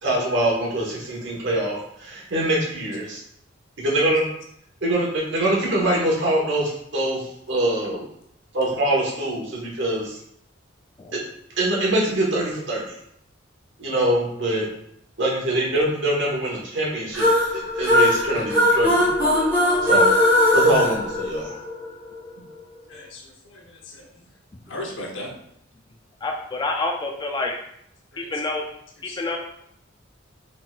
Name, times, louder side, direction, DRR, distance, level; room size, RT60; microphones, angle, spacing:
voice 1, 0.0-3.2 3.8-4.2 4.8-8.0 8.5-10.2 11.1-11.2 11.6-12.8 13.8-14.7 15.2-19.1 19.3-19.4 19.8-20.1 20.5-21.5, right 1 dB, 65° right, -3 dB, 1.3 m, -24 dB
sound 1, 17.1-21.9, left 1 dB, 10° right, 1.2 m, -19 dB
voice 2, 22.9-24.1 24.7-25.3 28.1-28.3 29.0-29.2, left 1 dB, 75° left, 0 dB, 0.9 m, -37 dB
voice 3, 26.2-27.6 28.2-28.6 29.2-29.4, left 2 dB, 20° left, 2 dB, 0.4 m, -27 dB
4.1 x 3.7 x 2.4 m, 0.72 s
head